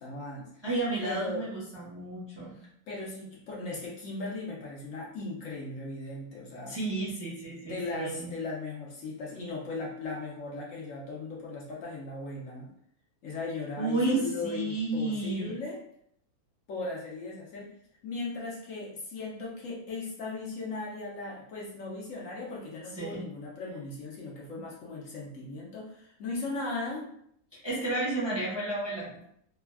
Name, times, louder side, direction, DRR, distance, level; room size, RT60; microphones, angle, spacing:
voice 1, 0.0-0.6 1.0-1.5 2.9-6.8 7.6-12.7 13.2-15.8 16.7-17.7 18.0-27.1, left 3 dB, 65° left, -4 dB, 1.0 m, -37 dB
voice 2, 0.6-2.6 6.7-8.3 13.8-15.5 22.9-23.2 24.6-24.7 27.5-29.2, right 2 dB, 25° right, -9 dB, 0.7 m, -32 dB
3.3 x 2.2 x 2.2 m, 0.69 s
omnidirectional pair, 1.6 m